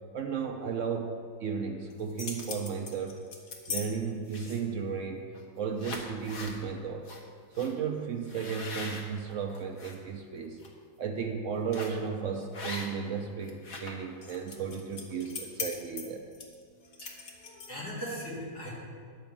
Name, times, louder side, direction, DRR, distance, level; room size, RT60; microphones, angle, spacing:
voice 1, 0.1-3.2 3.7-5.3 5.6-7.2 7.5-10.6 11.0-16.2, right 6 dB, 65° right, 4 dB, 0.8 m, -34 dB
sound 1, 1.9-3.8 4.3-4.8 5.3-5.5 5.8-6.6 7.1-7.2 7.6-7.7 8.3-10.0 10.4-10.7 11.7-12.0 12.5-13.1 13.4-17.9, left 4 dB, 60° left, 1.5 m, -40 dB
voice 2, 17.0-18.7, equal, 85° left, -8 dB, 3.6 m, -40 dB
10.5 x 4.9 x 7.2 m, 2.2 s
omnidirectional pair, 1.7 m